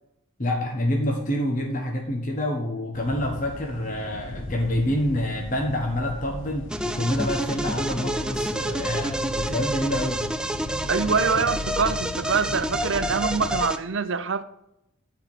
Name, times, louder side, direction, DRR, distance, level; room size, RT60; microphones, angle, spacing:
voice 1, 0.4-10.3, left 1 dB, 35° left, 1.4 m, -27 dB
sound 1, 2.9-13.6, left 1 dB, 55° left, 1.2 m, -37 dB
sound 2, 6.7-13.8, right 1 dB, 5° right, 0.4 m, -29 dB
voice 2, 10.9-14.4, right 5 dB, 55° right, 0.6 m, -24 dB
13.0 x 4.7 x 7.7 m
head